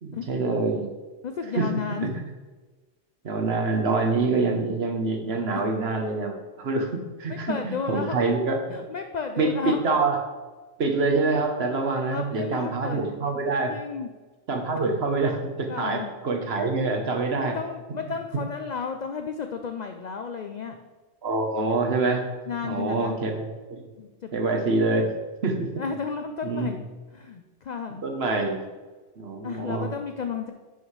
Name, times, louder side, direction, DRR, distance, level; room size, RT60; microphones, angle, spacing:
voice 1, 0.0-0.9 1.5-1.7 2.0-2.1 3.2-6.9 7.2-8.8 9.4-10.2 10.8-13.7 14.5-17.5 21.2-22.3 22.6-23.8 24.3-25.1 25.4-25.8 26.4-26.7 28.0-28.6 29.2-29.9, right 3 dB, 55° right, 3 dB, 1.2 m, -26 dB
voice 2, 1.2-2.1 6.9-7.0 7.3-8.3 8.7-10.0 12.1-13.3 13.7-14.1 15.7-16.1 17.4-20.8 22.5-23.2 24.0-24.6 25.8-26.8 27.1-28.0 29.4-30.5, left 6 dB, 70° left, 6 dB, 0.4 m, -33 dB
10.5 x 5.5 x 3.2 m, 1.3 s
omnidirectional pair, 1.3 m